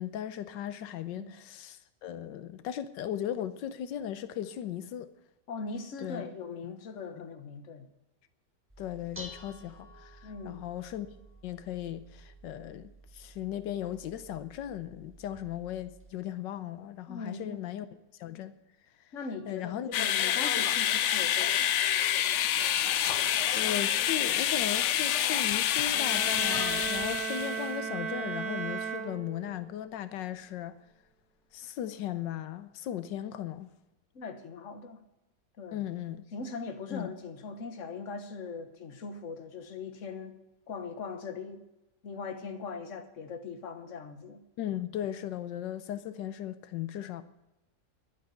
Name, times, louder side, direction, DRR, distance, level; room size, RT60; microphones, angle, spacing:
voice 1, 0.0-5.1 6.0-6.2 6.6-6.7 7.2-7.3 8.8-11.1 11.4-17.9 18.2-18.5 19.5-19.9 23.5-30.7 31.5-33.7 35.7-36.2 36.9-37.1 44.6-47.2, left 11 dB, 90° left, 1.5 m, -37 dB
voice 2, 5.5-7.9 10.2-10.6 17.1-17.6 19.1-21.8 34.1-35.0 35.6-35.8 36.3-40.4 40.7-41.6 42.0-44.4, left 4 dB, 45° left, 1.5 m, -40 dB
Dishes pots and pans, 8.7-16.1, right 1 dB, 5° right, 1.5 m, -52 dB
sound 1, 19.9-27.7, left 10 dB, 75° left, 0.6 m, -27 dB
sound 2, 25.9-29.7, right 6 dB, 60° right, 2.7 m, -35 dB
11.0 x 9.2 x 8.4 m
omnidirectional pair, 1.9 m